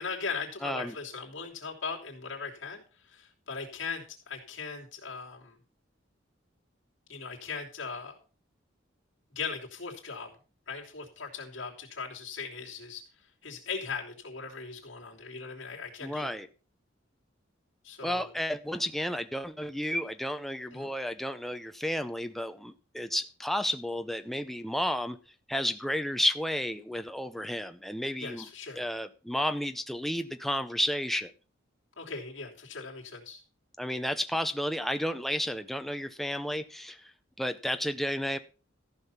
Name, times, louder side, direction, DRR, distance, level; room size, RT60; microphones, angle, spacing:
voice 1, 0.0-5.6 7.1-8.2 9.3-10.3 10.7-13.0 13.4-16.4 17.8-18.3 20.7-20.9 28.2-28.8 32.0-33.4, left 5 dB, 65° left, -2 dB, 3.1 m, -39 dB
voice 2, 0.6-1.0 16.0-16.5 18.0-25.2 25.5-28.5 28.8-31.3 33.8-37.1 37.4-38.4, equal, ahead, 8 dB, 0.6 m, -32 dB
14.0 x 5.6 x 5.8 m, 0.36 s
head